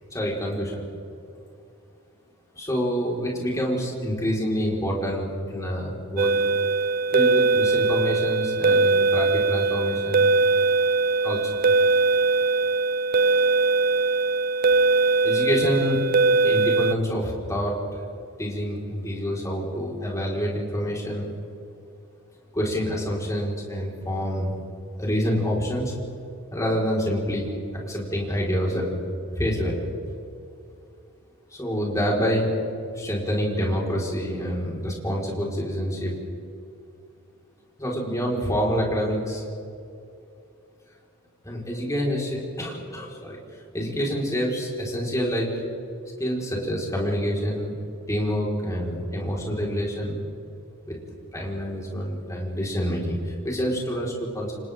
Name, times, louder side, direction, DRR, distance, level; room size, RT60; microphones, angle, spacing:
voice 1, 0.1-0.9 2.5-6.4 7.1-10.2 11.2-11.6 15.2-16.0 16.4-17.7 18.4-21.3 22.5-24.6 25.0-25.9 26.5-27.5 27.9-28.9 29.3-29.8 31.5-32.5 32.9-36.1 37.8-39.4 41.4-43.4 43.7-45.5 46.2-47.7 48.1-50.2 50.9-51.0 51.3-54.5, equal, 15° left, -3 dB, 5.2 m, -27 dB
sound 1, 6.2-16.9, right 3 dB, 40° right, 0.4 m, -21 dB
29.5 x 28.0 x 3.9 m, 2.6 s
head